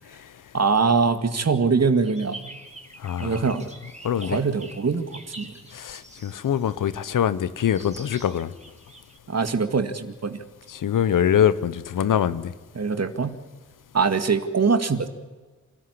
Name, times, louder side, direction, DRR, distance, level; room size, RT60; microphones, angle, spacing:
voice 1, 0.5-2.6 3.2-3.7 4.2-5.5 9.3-10.4 12.8-13.4 13.9-15.1, right 5 dB, 55° right, 9 dB, 2.1 m, -23 dB
sound 1, 2.0-7.1 7.7-9.2, right 1 dB, 20° right, 3.1 m, -45 dB
voice 2, 3.0-3.4 4.0-4.4 5.7-8.5 10.7-12.5, left 9 dB, 85° left, 15 dB, 0.9 m, -23 dB
27.0 x 13.5 x 9.9 m, 1.3 s
cardioid pair, 45°, 31 cm